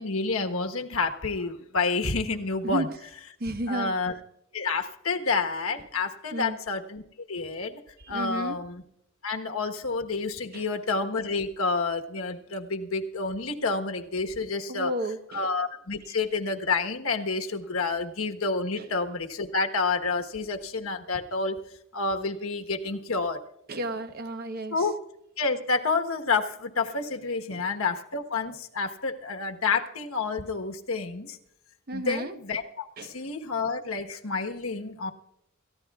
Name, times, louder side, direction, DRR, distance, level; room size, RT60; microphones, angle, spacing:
voice 1, 0.0-2.8 3.7-4.1 4.5-7.0 7.3-7.8 8.1-8.8 9.2-14.9 15.3-21.6 21.9-23.4 24.7-24.9 25.4-31.4 31.9-35.1, left 4 dB, 85° left, 1.2 m, -29 dB
voice 2, 3.4-3.9 6.3-6.6 8.0-8.6 10.5-10.7 14.7-15.5 16.0-16.1 18.8-18.9 23.7-24.9 27.5-27.7 31.9-32.4 33.0-33.3, right 1 dB, 50° right, 1.1 m, -33 dB
28.5 x 14.5 x 2.4 m
head